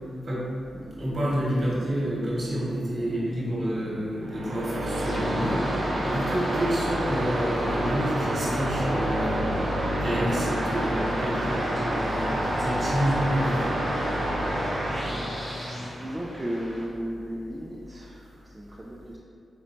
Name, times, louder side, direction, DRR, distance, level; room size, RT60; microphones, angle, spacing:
sound 1, 0.7-6.1, right 1 dB, 85° left, 0.8 m, -40 dB
voice 1, 1.0-9.5 10.0-13.8, equal, 50° right, -6 dB, 1.3 m, -29 dB
sound 2, 4.2-15.8, right 1 dB, 70° right, 0.5 m, -29 dB
sound 3, 5.0-16.9, equal, 40° left, 1.0 m, -33 dB
voice 2, 15.0-19.2, equal, 20° right, -4 dB, 0.5 m, -36 dB
4.3 x 3.0 x 2.6 m, 2.3 s
supercardioid pair, 45°, 0 cm